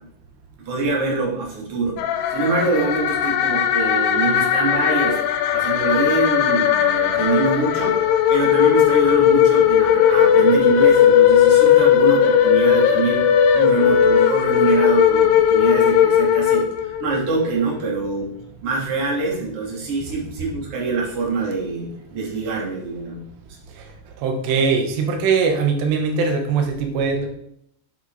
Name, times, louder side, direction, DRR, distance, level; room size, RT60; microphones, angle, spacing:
voice 1, 0.6-1.9 2.3-5.2 5.5-8.0 8.3-13.2 13.5-18.3 18.6-23.3, right 4 dB, 40° right, -4 dB, 3.4 m, -24 dB
sound 1, 2.0-17.3, left 9 dB, 80° left, 2.7 m, -17 dB
voice 2, 24.2-27.3, right 5 dB, 90° right, 4 dB, 3.4 m, -21 dB
9.1 x 7.6 x 4.1 m, 0.69 s
omnidirectional pair, 4.7 m